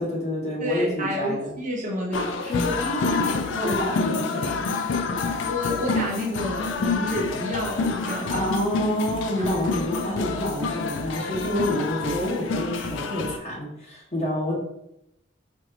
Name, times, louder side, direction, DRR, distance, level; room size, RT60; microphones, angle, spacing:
voice 1, 0.0-1.5 2.4-4.6 8.3-14.6, left 1 dB, 35° left, -5 dB, 1.4 m, -28 dB
voice 2, 0.6-2.6 5.5-8.5 9.4-9.5, equal, 40° right, -2 dB, 0.8 m, -29 dB
bandung-birthday song, 2.1-13.4, left 4 dB, 65° left, 0.4 m, -28 dB
4.3 x 2.7 x 2.9 m, 0.81 s
head